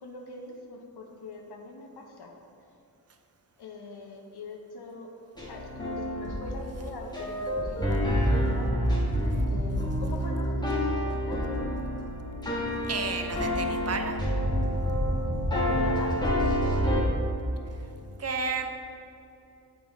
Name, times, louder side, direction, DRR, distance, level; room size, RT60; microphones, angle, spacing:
voice 1, 0.0-2.3 3.6-5.1 5.5-8.7 9.5-9.7 10.0-11.4 15.5-16.8, left 3 dB, 75° left, 1 dB, 0.8 m, -41 dB
sound 1, 5.4-17.0, equal, 10° left, 1.3 m, -28 dB
voice 2, 12.8-14.2 17.7-17.9 18.2-18.7, right 5 dB, 40° right, 5 dB, 0.6 m, -32 dB
8.3 x 4.0 x 4.6 m, 2.8 s
wide cardioid pair, 120°, 40 cm